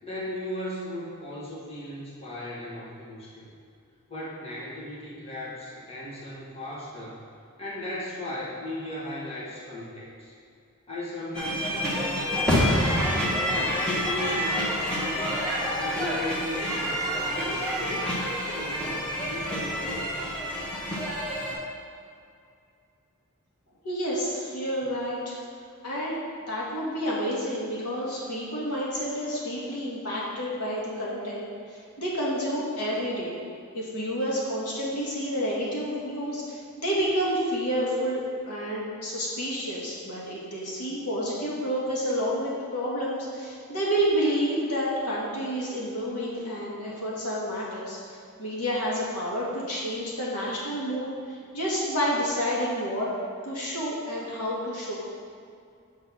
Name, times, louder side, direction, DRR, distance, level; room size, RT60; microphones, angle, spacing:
voice 1, 0.0-3.5 4.1-7.2 7.6-10.3 10.9-13.5 13.8-15.4 15.7-18.2 18.6-20.1, left 1 dB, 25° left, -7 dB, 1.6 m, -37 dB
sound 1, 11.3-21.5, equal, 5° left, 1.1 m, -27 dB
voice 2, 23.8-25.4 25.8-26.2 26.5-33.4 33.7-38.2 38.5-48.0 48.4-53.1 53.4-54.9, equal, 90° left, -5 dB, 1.7 m, -29 dB
6.6 x 3.9 x 6.0 m, 2.4 s
head